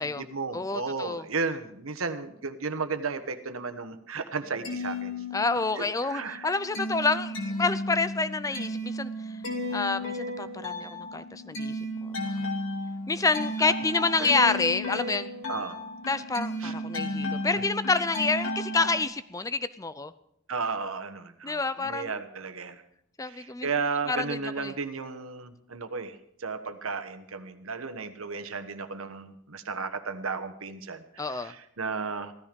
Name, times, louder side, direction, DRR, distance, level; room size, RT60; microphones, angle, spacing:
voice 1, 0.0-5.1 5.8-6.5 14.2-14.3 15.5-15.8 16.6-16.7 17.6-17.7 20.5-22.8 23.2-32.3, right 4 dB, 80° right, 9 dB, 1.3 m, -34 dB
voice 2, 0.5-1.3 5.3-9.4 9.7-11.8 12.4-12.5 13.1-15.3 16.1-20.1 21.4-22.1 23.2-23.7 24.1-24.7 31.2-31.5, left 3 dB, 15° left, 14 dB, 0.5 m, -28 dB
sound 1, 4.4-5.9 6.2-19.0, left 1 dB, 75° left, 2.8 m, -34 dB
16.0 x 13.5 x 5.3 m, 0.73 s
head